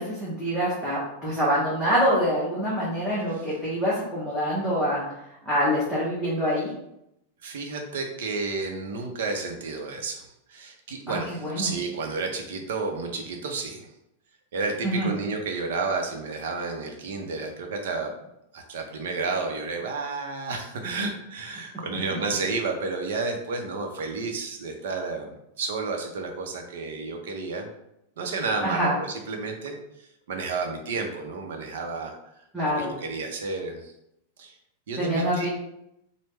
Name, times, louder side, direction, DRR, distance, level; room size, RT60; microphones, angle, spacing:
voice 1, 0.0-5.0 5.5-6.7 11.1-11.7 14.8-15.1 28.6-28.9 32.5-32.9 35.0-35.5, equal, ahead, -10 dB, 0.8 m, -25 dB
voice 2, 7.4-13.9 14.5-18.1 18.5-27.7 28.2-32.1 32.8-33.9 34.4-34.6 34.9-35.5, right 4 dB, 75° right, 3 dB, 0.7 m, -31 dB
3.4 x 2.1 x 3.2 m, 0.81 s
supercardioid pair, 155°, 0 cm